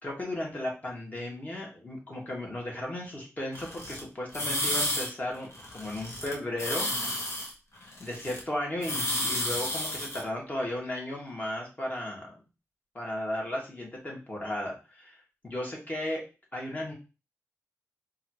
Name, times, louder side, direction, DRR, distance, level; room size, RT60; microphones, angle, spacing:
voice 1, 0.0-7.2 8.0-12.3 12.9-15.2 15.4-16.2 16.5-16.9, left 1 dB, 30° left, -1 dB, 1.5 m, -35 dB
sound 1, 3.5-4.0 4.3-5.1 5.3-6.3 6.6-8.4 8.8-10.2, left 1 dB, 65° left, 1.1 m, -31 dB
4.0 x 2.6 x 3.0 m, 0.31 s
wide cardioid pair, 85°, 5 cm